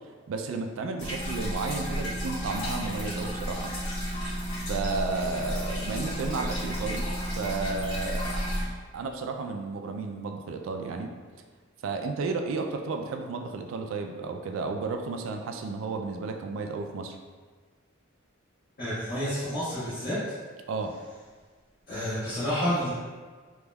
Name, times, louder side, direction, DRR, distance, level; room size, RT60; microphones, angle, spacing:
voice 1, 0.3-3.7 4.7-7.1 7.4-8.4 8.9-11.1 11.8-17.2 20.7-20.9, right 4 dB, 70° right, 4 dB, 0.3 m, -32 dB
sound 1, 1.0-8.6, equal, 70° left, 1.3 m, -32 dB
voice 2, 18.8-20.2 21.9-22.9, equal, 50° left, -15 dB, 1.3 m, -29 dB
3.4 x 2.9 x 2.2 m, 1.5 s
head